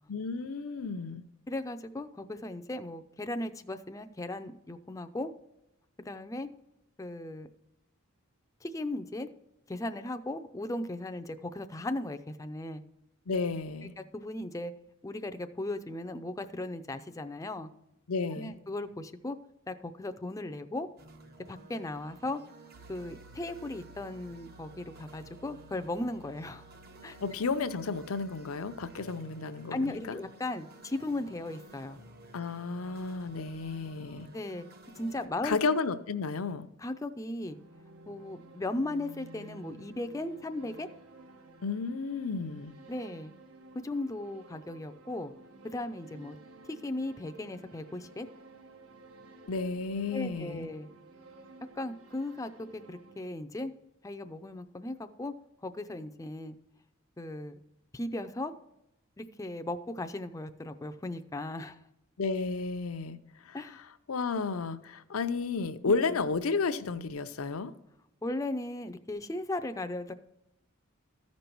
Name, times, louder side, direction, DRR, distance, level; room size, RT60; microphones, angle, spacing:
voice 1, 0.1-1.2 13.3-13.9 18.1-18.5 27.2-30.2 32.3-34.3 35.4-36.7 41.6-42.7 49.5-50.7 62.2-63.2 63.4-67.7, left 4 dB, 85° left, 11 dB, 0.6 m, -32 dB
voice 2, 1.5-5.3 6.0-6.5 7.0-7.5 8.6-9.3 9.7-12.8 14.0-14.7 15.0-17.7 18.3-19.4 19.7-20.9 21.5-22.4 22.9-26.6 27.0-27.2 29.7-32.0 34.3-34.7 35.0-35.6 36.8-37.6 38.1-40.9 42.9-43.3 43.8-45.3 45.6-46.4 46.7-48.3 50.1-50.9 51.8-53.7 54.0-55.3 55.6-56.6 57.2-57.6 57.9-58.5 59.2-61.8 63.5-63.8 65.9-66.2 68.2-70.1, left 2 dB, 15° left, 9 dB, 0.4 m, -37 dB
sound 1, 21.0-35.3, right 1 dB, 45° right, 1.0 m, -53 dB
Piano, 22.7-29.0, right 2 dB, 65° right, 0.7 m, -57 dB
sound 2, 37.5-53.3, right 2 dB, 90° right, 1.1 m, -53 dB
14.0 x 5.3 x 4.5 m, 0.86 s
head